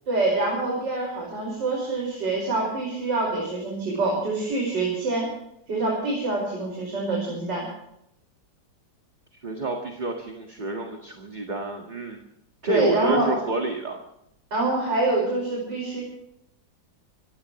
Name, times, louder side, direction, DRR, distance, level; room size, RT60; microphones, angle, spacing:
voice 1, 0.1-5.3 5.7-7.6 12.6-13.3 14.5-16.0, right 2 dB, 75° right, -3 dB, 6.2 m, -25 dB
voice 2, 9.4-12.2 12.6-14.0, right 2 dB, 25° right, 2 dB, 2.0 m, -29 dB
26.0 x 17.0 x 3.2 m, 0.78 s
omnidirectional pair, 1.9 m